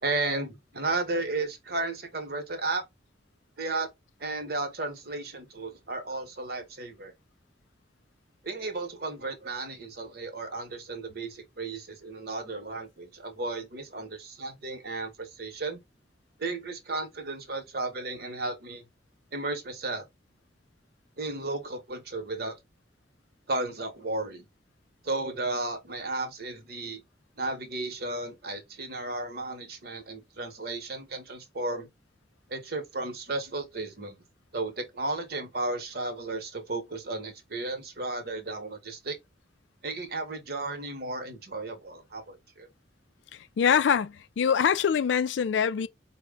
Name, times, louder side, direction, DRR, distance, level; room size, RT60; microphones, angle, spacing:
voice 1, 0.0-2.8 3.6-3.9 4.2-7.1 8.4-15.8 16.4-18.9 19.3-20.1 21.2-22.6 23.5-24.4 25.0-27.0 27.4-31.9 32.5-34.2 34.5-39.2 39.8-42.7, right 2 dB, 55° right, 0.9 m, -34 dB
voice 2, 43.3-45.9, left 7 dB, 70° left, 0.3 m, -24 dB
4.4 x 2.1 x 3.4 m
head